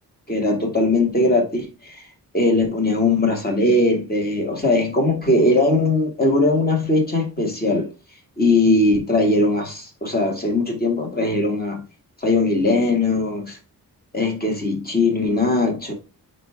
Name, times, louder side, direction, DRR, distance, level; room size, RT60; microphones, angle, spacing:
voice 1, 0.3-2.0 2.3-7.9 8.4-11.8 12.2-13.6 14.1-15.9, left 2 dB, 25° left, 2.3 m, -20 dB
9.4 x 3.3 x 3.6 m
cardioid pair, 95°, 37 cm